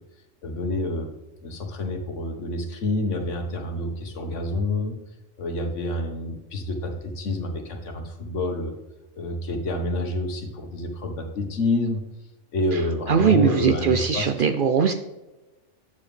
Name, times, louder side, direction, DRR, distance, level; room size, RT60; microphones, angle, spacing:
voice 1, 0.4-1.1 1.4-5.0 5.4-8.8 9.2-12.0 12.5-14.3, left 2 dB, 80° left, 4 dB, 1.5 m, -28 dB
voice 2, 13.1-14.9, right 7 dB, 60° right, 8 dB, 0.6 m, -20 dB
8.3 x 7.0 x 3.2 m, 1.0 s
omnidirectional pair, 1.3 m